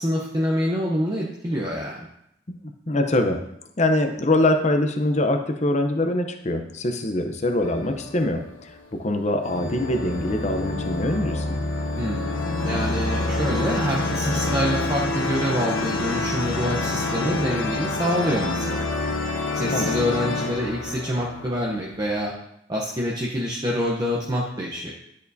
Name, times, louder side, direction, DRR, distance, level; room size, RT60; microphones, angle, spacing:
voice 1, 0.0-2.1 12.0-18.9 19.5-22.3 22.7-24.9, equal, 20° right, -3 dB, 0.8 m, -26 dB
voice 2, 2.6-3.4 3.8-11.6 19.7-20.1, left 1 dB, 35° left, 6 dB, 0.7 m, -24 dB
sound 1, 7.6-8.8 9.4-22.1, left 2 dB, 90° left, 0.9 m, -27 dB
11.0 x 6.5 x 2.7 m, 0.76 s
head